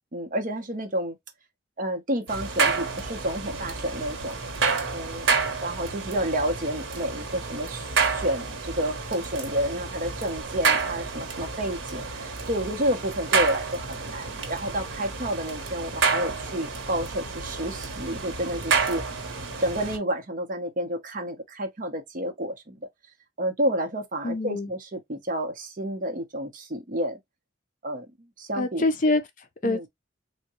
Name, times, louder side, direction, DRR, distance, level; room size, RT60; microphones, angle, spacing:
voice 1, 0.1-1.2 1.8-4.4 4.9-5.3 5.6-7.9 8.2-19.0 19.6-22.9 23.4-27.2 27.8-28.1 28.4-28.8 29.6-29.9, right 1 dB, 45° right, 0.8 m, -30 dB
sound 1, 2.3-20.0, right 5 dB, 90° right, 0.9 m, -29 dB
voice 2, 24.2-24.7 28.5-29.9, left 2 dB, 45° left, 0.5 m, -26 dB
3.5 x 2.2 x 2.9 m
head